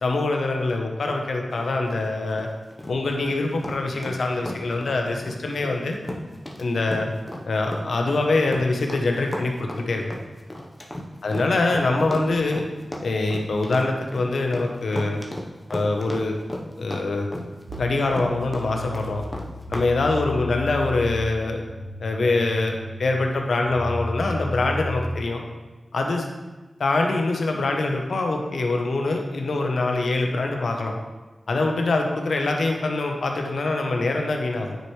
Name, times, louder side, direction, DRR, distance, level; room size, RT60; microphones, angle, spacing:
voice 1, 0.0-2.5 2.9-6.0 6.6-7.1 7.5-10.0 11.2-12.7 13.0-15.2 15.7-16.3 16.8-17.3 17.8-19.2 19.7-21.6 22.0-25.4 25.9-26.3 26.8-31.0 31.5-34.8, left 2 dB, 80° left, 2 dB, 0.9 m, -24 dB
sound 1, 1.5-19.9, left 1 dB, 25° left, 1.0 m, -34 dB
sound 2, 17.7-25.2, left 2 dB, 85° right, 1.1 m, -34 dB
9.1 x 4.7 x 3.2 m, 1.2 s
cardioid pair, 45°, 0 cm